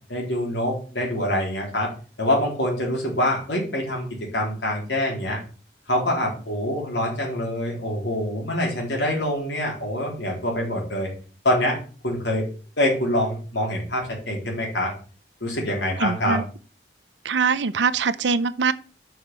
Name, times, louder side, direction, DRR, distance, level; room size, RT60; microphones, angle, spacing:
voice 1, 0.1-1.9 2.2-4.1 4.3-5.4 5.9-11.1 11.4-11.8 12.0-12.4 12.8-14.9 15.4-16.4, left 1 dB, 85° left, 3.7 m, -25 dB
voice 2, 16.0-16.4 17.2-18.7, right 5 dB, 90° right, 0.6 m, -23 dB
6.3 x 5.1 x 6.8 m
head